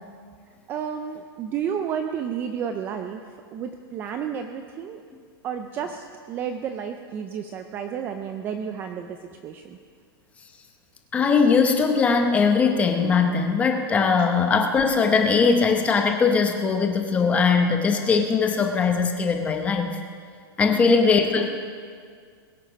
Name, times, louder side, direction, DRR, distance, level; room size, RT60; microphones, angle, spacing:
voice 1, 0.7-5.0 5.4-9.8 20.6-20.9, right 8 dB, 15° right, 7 dB, 0.4 m, -31 dB
voice 2, 11.1-19.9 20.6-21.5, left 5 dB, 10° left, 5 dB, 0.8 m, -20 dB
22.0 x 8.6 x 5.1 m, 2.1 s
supercardioid pair, 170°, 13 cm